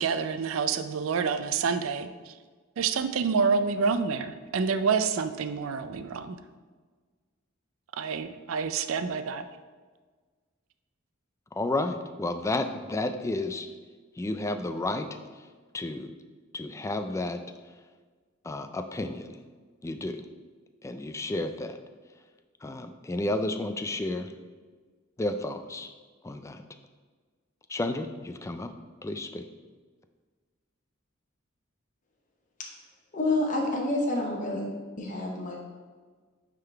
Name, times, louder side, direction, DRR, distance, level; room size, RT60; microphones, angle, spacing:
voice 1, 0.0-2.3 2.8-6.4 8.0-9.4, right 5 dB, 75° right, 10 dB, 0.4 m, -28 dB
voice 2, 11.5-13.7 14.2-15.1 15.7-16.1 16.5-17.4 18.4-19.4 19.8-20.3 20.8-21.8 22.6-24.3 25.2-25.9 26.2-26.6 27.7-28.7 29.0-29.5, left 2 dB, 15° left, 8 dB, 0.3 m, -31 dB
voice 3, 33.1-34.7 35.0-35.6, left 2 dB, 40° left, -1 dB, 0.8 m, -28 dB
9.0 x 3.8 x 3.3 m, 1.5 s
head